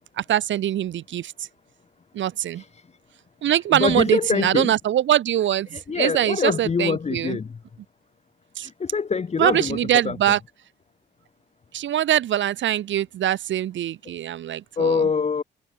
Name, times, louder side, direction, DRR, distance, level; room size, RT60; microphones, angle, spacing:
voice 1, 0.2-1.5 2.1-2.6 3.4-7.4 8.6-8.7 9.4-10.4 11.7-15.0, right 11 dB, 70° right, 2.1 m, -23 dB
voice 2, 2.5-2.9 3.4-4.7 5.7-7.6 8.6-10.2 14.8-15.4, left 5 dB, 35° left, 1.4 m, -25 dB
cardioid pair, 90°, 20 cm